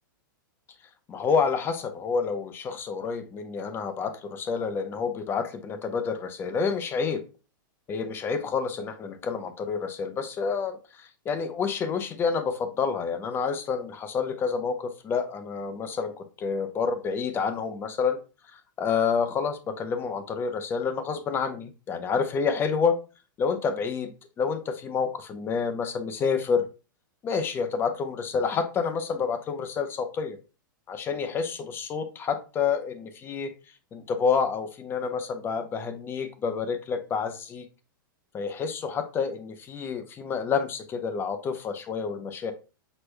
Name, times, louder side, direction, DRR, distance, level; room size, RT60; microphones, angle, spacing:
voice 1, 1.1-7.2 7.9-16.1 16.4-18.2 18.5-23.0 23.4-24.1 24.4-26.7 27.2-30.4 30.9-33.5 33.9-37.6 38.3-42.5, left 5 dB, 20° left, 9 dB, 0.6 m, -28 dB
6.1 x 2.2 x 3.2 m, 0.33 s
supercardioid pair, 145°, 11 cm